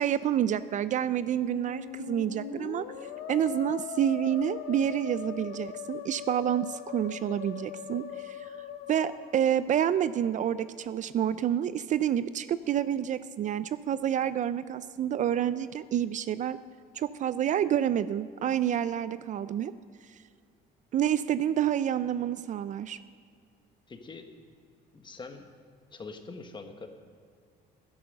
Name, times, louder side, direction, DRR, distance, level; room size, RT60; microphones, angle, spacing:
voice 1, 0.0-2.8 3.3-8.5 8.9-16.6 16.9-19.7 20.9-23.0, right 10 dB, 50° right, 15 dB, 0.4 m, -28 dB
Musical instrument, 1.3-10.0, left 9 dB, 85° left, 1.0 m, -40 dB
voice 2, 23.9-24.3 24.9-25.5 25.9-26.9, left 4 dB, 30° left, 6 dB, 1.3 m, -43 dB
12.0 x 10.5 x 6.6 m, 2.2 s
cardioid pair, 110°, 17 cm